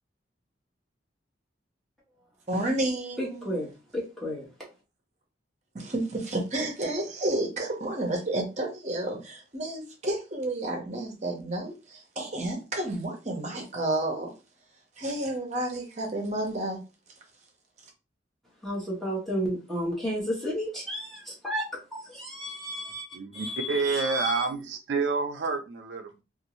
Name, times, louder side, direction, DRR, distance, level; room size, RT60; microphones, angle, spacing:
voice 1, 2.5-3.6 5.7-14.3 15.0-16.8, right 1 dB, 40° right, 0.7 m, -31 dB
voice 2, 3.2-4.4 18.6-23.0 23.3-24.5, equal, ahead, 1.0 m, -32 dB
voice 3, 23.1-26.2, right 4 dB, 75° right, 0.4 m, -29 dB
2.6 x 2.4 x 3.0 m
head